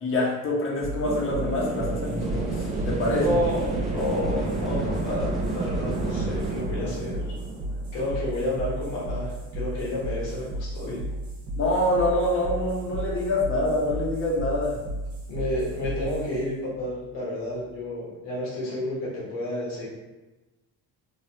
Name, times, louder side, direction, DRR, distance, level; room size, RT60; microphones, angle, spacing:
voice 1, 0.0-3.4 11.6-14.8, left 1 dB, 30° left, -2 dB, 0.8 m, -26 dB
sound 1, 0.8-17.9, right 1 dB, 45° right, 1.0 m, -34 dB
sound 2, 1.0-8.6, right 3 dB, 20° right, 0.3 m, -32 dB
sound 3, 2.2-6.6, equal, ahead, 0.8 m, -35 dB
voice 2, 3.1-7.2 7.9-11.0 15.3-19.9, left 1 dB, 90° left, -6 dB, 1.3 m, -30 dB
3.3 x 2.5 x 2.8 m, 1.1 s
cardioid pair, 90°, 40 cm